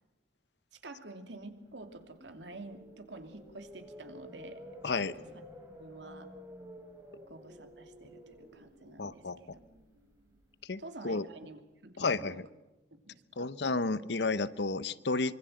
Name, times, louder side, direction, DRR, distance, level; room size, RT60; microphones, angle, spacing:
voice 1, 0.7-5.4 5.8-6.3 7.3-9.5 10.8-12.4 12.9-13.5, right 2 dB, 90° right, 7 dB, 2.8 m, -49 dB
sound 1, 1.5-11.7, equal, 15° right, 5.1 m, -52 dB
voice 2, 4.8-5.1 9.0-9.6 10.6-11.3 12.0-12.5 13.4-15.3, left 3 dB, 75° left, 16 dB, 0.9 m, -32 dB
25.0 x 24.0 x 7.8 m, 1.0 s
head